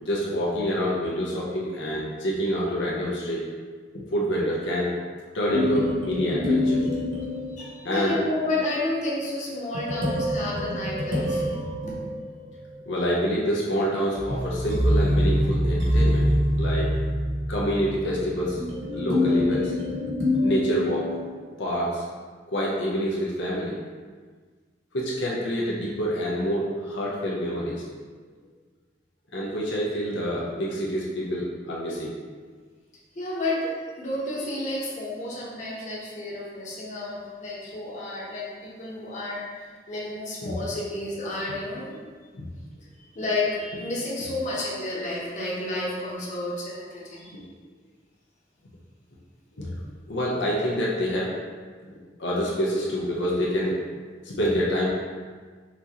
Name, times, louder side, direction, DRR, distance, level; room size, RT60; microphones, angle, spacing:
voice 1, 0.0-3.4 3.9-4.9 5.3-6.9 7.8-8.2 12.9-16.3 16.6-16.9 17.5-18.6 18.9-19.7 20.4-21.1 21.6-22.0 22.5-23.8 24.9-27.8 29.3-32.1 40.4-40.5 42.3-42.5 47.3-47.5 49.6-49.8 50.1-51.3 51.9-53.8 54.2-54.9, equal, 80° left, -5 dB, 0.8 m, -27 dB
sound 1, 5.5-8.1 9.7-12.7 14.2-21.5, left 1 dB, 75° right, 1.0 m, -25 dB
voice 2, 7.6-11.4 11.8-12.0 33.1-42.0 43.0-47.3, left 2 dB, 40° left, -6 dB, 1.0 m, -31 dB
5.9 x 2.9 x 2.9 m, 1.5 s
head